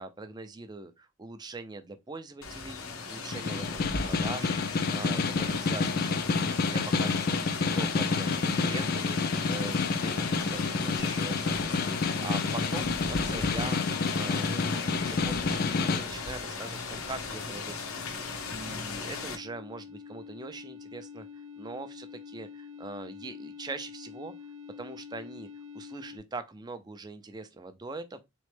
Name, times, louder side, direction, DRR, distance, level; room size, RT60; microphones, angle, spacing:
voice 1, 0.0-9.2 9.5-24.3 24.8-25.5 25.7-28.2, right 3 dB, 20° right, 0.4 m, -42 dB
Rain, 2.4-19.4, left 4 dB, 90° left, 0.9 m, -37 dB
Snare drum, 3.3-16.1, left 4 dB, 45° left, 0.4 m, -29 dB
sound 1, 16.0-26.2, left 6 dB, 75° right, 0.7 m, -47 dB
4.2 x 3.1 x 3.2 m
head